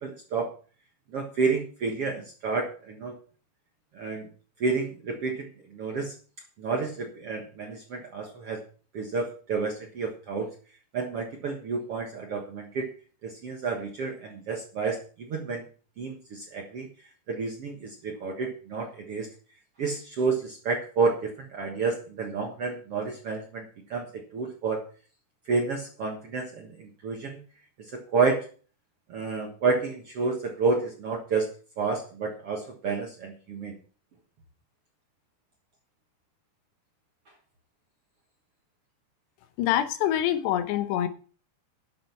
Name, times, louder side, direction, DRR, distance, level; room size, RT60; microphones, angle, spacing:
voice 1, 0.0-0.5 1.1-3.1 3.9-4.3 4.6-5.5 5.7-6.1 6.6-8.6 8.9-10.5 10.9-12.9 13.2-15.6 16.0-16.9 17.3-19.3 19.8-23.6 23.9-24.8 25.5-27.4 27.9-28.5 29.1-31.5 31.8-33.7, right 4 dB, 60° right, 1 dB, 1.5 m, -30 dB
voice 2, 39.6-41.1, left 11 dB, 85° left, 10 dB, 3.2 m, -25 dB
11.0 x 7.5 x 5.8 m, 0.40 s
omnidirectional pair, 4.8 m